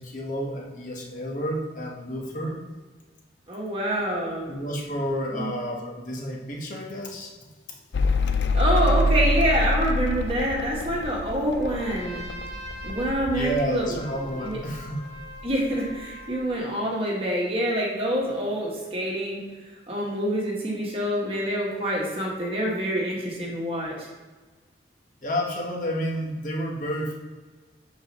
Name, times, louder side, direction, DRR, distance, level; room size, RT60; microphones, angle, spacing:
voice 1, 0.0-2.6 4.5-7.3 13.3-15.0 25.2-27.2, equal, 45° left, -1 dB, 1.2 m, -30 dB
voice 2, 3.5-4.5 5.3-5.5 8.5-12.2 12.8-14.0 14.4-14.6 15.4-19.4 19.9-24.1, equal, 30° right, -3 dB, 1.5 m, -26 dB
Mechanical fan, 7.9-14.8 15.1-15.9, left 1 dB, 65° left, 0.4 m, -26 dB
Trumpet, 11.5-16.6, right 1 dB, 65° right, 0.8 m, -43 dB
5.1 x 4.1 x 5.4 m, 1.3 s
head